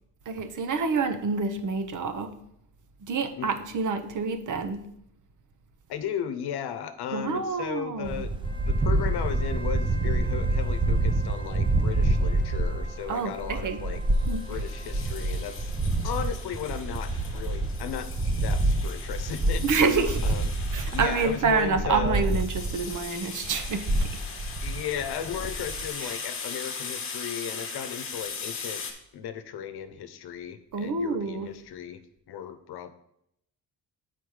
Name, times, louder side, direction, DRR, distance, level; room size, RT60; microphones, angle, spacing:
voice 1, 0.3-2.4 3.0-4.9 7.1-8.3 13.1-13.9 14.3-14.4 19.6-20.2 20.7-24.2 26.0-26.1 30.7-31.5, right 5 dB, 50° right, 8 dB, 0.8 m, -28 dB
voice 2, 3.4-3.8 5.9-14.0 14.5-15.7 16.0-22.3 24.6-28.8 29.1-32.9, left 8 dB, 80° left, 10 dB, 0.8 m, -36 dB
sound 1, 8.0-23.1 23.4-25.9, right 2 dB, 15° right, 0.4 m, -27 dB
Wind instrument woodwind instrument, 8.4-15.9, right 2 dB, 15° left, 0.7 m, -47 dB
sound 2, 14.1-28.9, left 5 dB, 35° left, 1.1 m, -40 dB
7.9 x 4.3 x 4.8 m, 0.74 s
cardioid pair, 135°, 38 cm